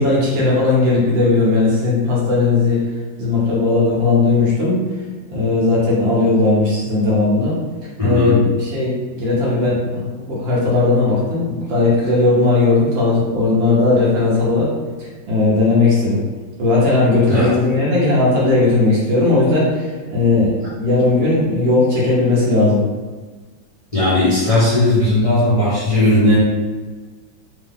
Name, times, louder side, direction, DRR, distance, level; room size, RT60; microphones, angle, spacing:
voice 1, 0.0-2.8 3.2-4.8 5.3-7.6 8.0-14.7 15.0-16.2 16.6-22.8, left 3 dB, 70° right, -6 dB, 2.0 m, -17 dB
voice 2, 8.0-8.4 17.3-17.5 23.9-26.4, left 1 dB, 20° left, -11 dB, 1.3 m, -16 dB
4.3 x 3.1 x 3.6 m, 1.3 s
omnidirectional pair, 2.1 m